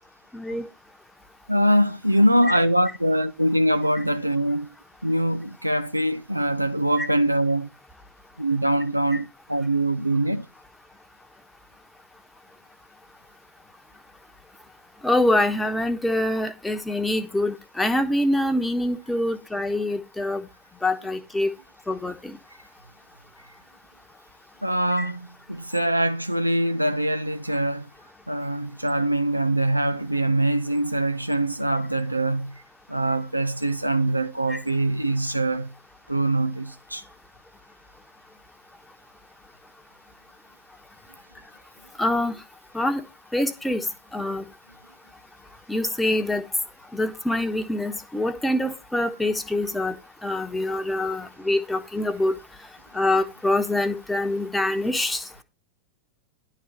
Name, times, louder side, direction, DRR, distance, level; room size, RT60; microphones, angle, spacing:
voice 1, 0.3-0.6 7.0-7.1 9.1-9.2 15.0-20.4 20.8-21.5 21.9-22.4 25.0-25.1 34.5-34.6 42.0-42.4 42.7-43.0 43.3-43.9 44.1-44.4 45.7-46.4 46.9-49.9 50.2-52.4 52.9-55.4, left 1 dB, 5° left, 1.1 m, -25 dB
voice 2, 1.5-4.7 5.0-7.7 8.4-10.4 24.6-27.8 28.3-32.5 32.9-35.7 36.1-37.0, right 1 dB, 85° right, 0.5 m, -23 dB
11.0 x 4.1 x 7.0 m
figure-of-eight pair, 90°, 0 cm